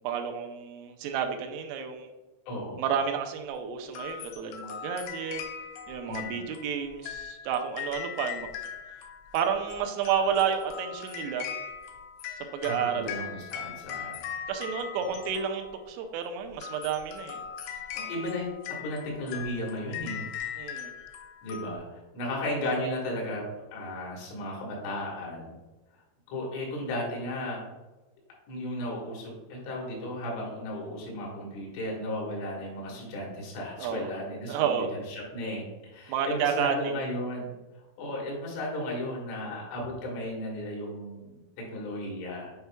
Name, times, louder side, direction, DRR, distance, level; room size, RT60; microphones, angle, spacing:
voice 1, 0.0-2.1 2.8-5.4 5.9-8.6 9.3-11.5 12.5-13.2 14.5-17.4 20.6-20.9 33.8-34.1 34.5-34.9 36.1-36.8, right 7 dB, 85° right, 5 dB, 3.2 m, -30 dB
voice 2, 2.5-2.8 6.1-6.4 12.6-14.2 14.9-15.2 17.9-18.5 18.8-20.3 21.4-23.4 23.7-25.6 26.3-27.6 28.5-37.6 38.0-42.5, left 1 dB, 75° left, -2 dB, 3.7 m, -35 dB
sound 1, 3.9-15.9 16.5-21.8, left 8 dB, 90° left, 2.4 m, -40 dB
9.3 x 4.5 x 2.2 m, 1.1 s
omnidirectional pair, 5.8 m